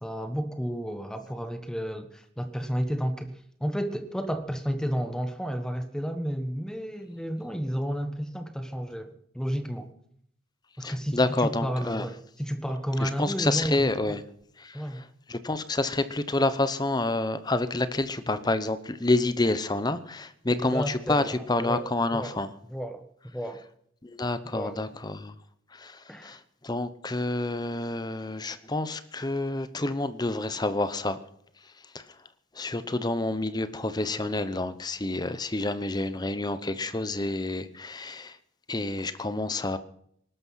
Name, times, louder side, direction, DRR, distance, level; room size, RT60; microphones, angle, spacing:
voice 1, 0.0-3.3 3.6-9.9 10.8-14.2 14.7-15.0 20.5-21.8 22.1-22.4 22.7-23.6 24.5-24.8 26.1-26.4, equal, 5° left, 8 dB, 1.2 m, -32 dB
voice 2, 10.8-12.1 13.0-14.2 14.6-22.5 24.0-25.3 25.7-31.2 31.9-32.1 32.5-38.4 38.7-39.8, left 2 dB, 20° left, 13 dB, 0.8 m, -28 dB
19.5 x 12.5 x 5.7 m, 0.70 s
head